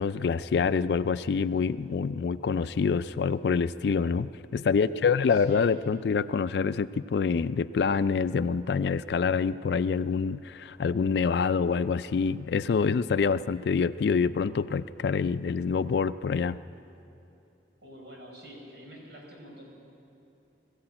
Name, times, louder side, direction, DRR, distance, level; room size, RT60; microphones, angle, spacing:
voice 1, 0.0-16.6, left 5 dB, 70° left, 13 dB, 0.3 m, -26 dB
voice 2, 4.7-5.7 17.8-19.6, equal, 75° right, 0 dB, 5.0 m, -46 dB
20.5 x 14.5 x 8.9 m, 2.9 s
head